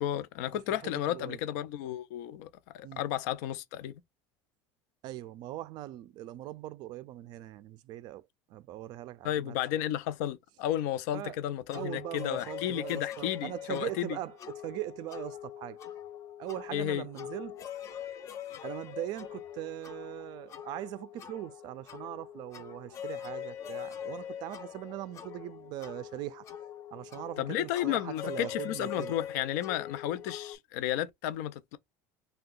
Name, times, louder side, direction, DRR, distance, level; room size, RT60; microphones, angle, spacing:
voice 1, 0.0-2.5 2.7-4.0 9.2-14.2 16.7-17.1 27.4-31.8, left 12 dB, 80° left, 0.5 m, -33 dB
voice 2, 0.7-1.4 2.8-3.0 5.0-9.8 11.1-11.4 11.7-15.8 16.4-17.6 18.6-26.5 26.9-29.1, right 15 dB, 50° right, 0.3 m, -41 dB
sound 1, 11.7-30.5, left 10 dB, 35° left, 0.5 m, -43 dB
2.7 x 2.2 x 3.7 m
cardioid pair, 140°, 9 cm